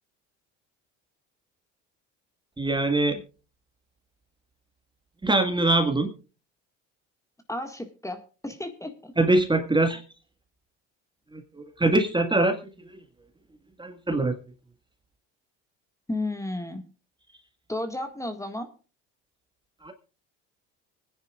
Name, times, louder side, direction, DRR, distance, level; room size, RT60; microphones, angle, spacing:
voice 1, 2.6-3.2 5.2-6.1 9.2-10.0 11.3-12.6 12.8-13.0 13.8-14.3 19.8-19.9, right 2 dB, 15° right, 6 dB, 1.7 m, -23 dB
voice 2, 7.5-9.1 16.1-16.8 17.7-18.7, left 1 dB, 10° left, 6 dB, 1.8 m, -33 dB
24.5 x 10.0 x 2.4 m, 0.34 s
hypercardioid pair, 75°, 36 cm